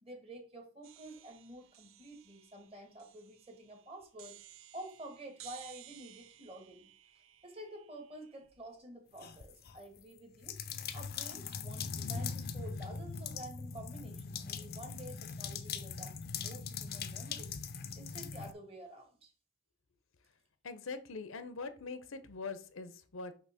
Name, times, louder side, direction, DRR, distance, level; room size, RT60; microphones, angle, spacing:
voice 1, 0.0-4.4 4.7-6.9 7.4-10.6 10.9-17.6 17.9-19.3, right 1 dB, 30° right, 4 dB, 1.5 m, -50 dB
sound 1, 0.8-8.8, right 12 dB, 80° right, 0.5 m, -57 dB
sound 2, 9.2-9.8 10.4-18.5, left 6 dB, 50° left, 0.5 m, -41 dB
voice 2, 20.6-23.4, left 4 dB, 80° left, 12 dB, 0.7 m, -43 dB
6.2 x 2.9 x 5.6 m, 0.40 s
head